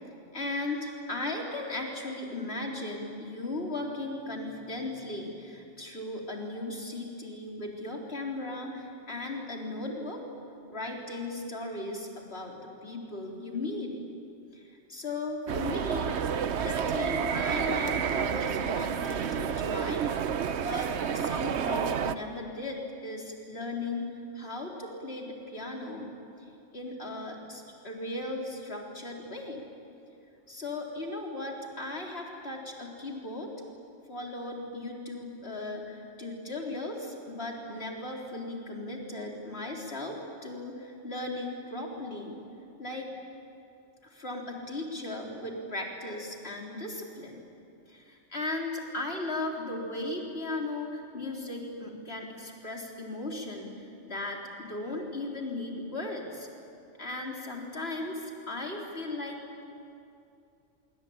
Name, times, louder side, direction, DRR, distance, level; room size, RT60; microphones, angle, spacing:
voice 1, 0.3-10.2 10.7-13.9 14.5-16.1 16.6-20.0 20.6-24.1 24.3-26.1 26.7-29.6 30.5-33.5 34.1-42.4 42.8-43.1 44.0-47.4 47.9-53.8 54.0-56.5 57.0-59.6, left 2 dB, 55° left, -1 dB, 4.0 m, -37 dB
sound 1, 15.5-22.1, right 7 dB, 70° right, 1.1 m, -30 dB
26.0 x 24.0 x 8.8 m, 2.6 s
omnidirectional pair, 1.2 m